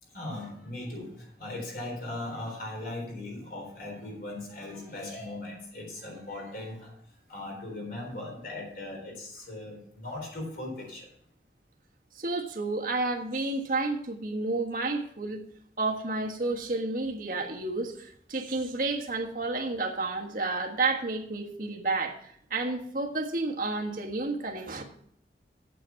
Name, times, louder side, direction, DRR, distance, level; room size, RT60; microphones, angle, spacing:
voice 1, 0.0-11.1, left 2 dB, 50° left, 0 dB, 3.9 m, -39 dB
voice 2, 12.1-15.4 15.8-24.8, right 3 dB, 50° right, 1 dB, 1.6 m, -31 dB
8.9 x 8.6 x 5.8 m, 0.66 s
head